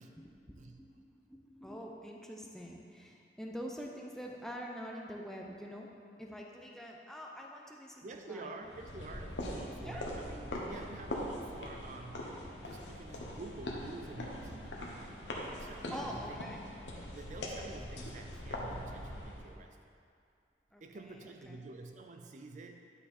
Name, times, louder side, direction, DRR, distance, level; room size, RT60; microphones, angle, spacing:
voice 1, 0.0-8.5 9.8-10.1 15.9-16.6 20.7-21.6, equal, 5° left, 0 dB, 0.6 m, -46 dB
voice 2, 8.0-16.5 17.1-19.8 20.8-22.8, right 3 dB, 45° right, 4 dB, 0.4 m, -48 dB
sound 1, 8.6-19.5, left 1 dB, 85° left, 1.1 m, -42 dB
sound 2, 14.4-14.8 16.1-16.5 17.3-17.6 18.4-19.1 19.7-20.6, equal, 45° left, 1.3 m, -54 dB
9.7 x 5.3 x 4.2 m, 2.4 s
head